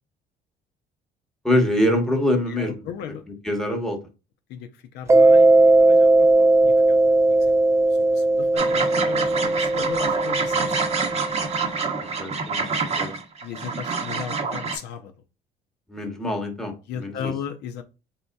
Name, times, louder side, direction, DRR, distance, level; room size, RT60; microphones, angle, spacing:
voice 1, 1.4-2.8 3.4-4.0 12.2-12.6 13.0-13.1 15.9-17.3, left 1 dB, 5° left, 0.9 m, -24 dB
voice 2, 2.5-3.2 4.5-4.7 4.9-7.0 7.7-10.7 13.4-15.1 16.9-17.8, left 8 dB, 80° left, 0.5 m, -36 dB
Mallet percussion, 5.1-11.5, right 2 dB, 15° right, 0.4 m, -18 dB
sound 1, 8.6-14.8, right 4 dB, 40° right, 0.8 m, -27 dB
4.0 x 3.6 x 2.2 m
cardioid pair, 110°, 17 cm